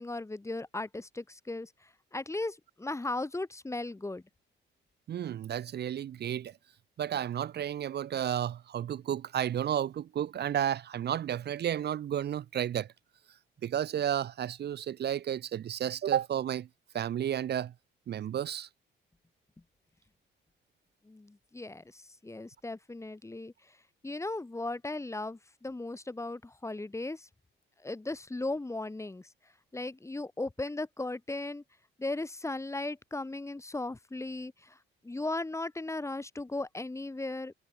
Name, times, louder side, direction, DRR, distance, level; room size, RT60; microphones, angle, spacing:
voice 1, 0.0-4.2 21.0-23.8 24.0-27.3 27.8-29.3 29.7-31.6 32.0-34.8 35.0-37.5, left 2 dB, 15° left, 1.5 m, -37 dB
voice 2, 5.1-6.5 7.0-12.9 13.6-16.7 16.9-17.7 18.1-18.7, right 10 dB, 55° right, 0.8 m, -32 dB
cardioid pair, 90°, 20 cm